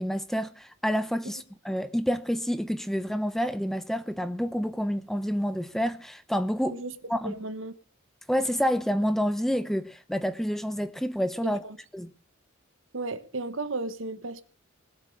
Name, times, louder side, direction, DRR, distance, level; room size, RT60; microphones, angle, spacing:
voice 1, 0.0-6.8 7.1-7.4 8.3-11.6 11.9-12.1, equal, ahead, 0.7 m, -28 dB
voice 2, 7.2-7.7 11.4-11.8 12.9-14.4, right 2 dB, 65° right, 1.3 m, -34 dB
20.0 x 8.0 x 6.4 m
head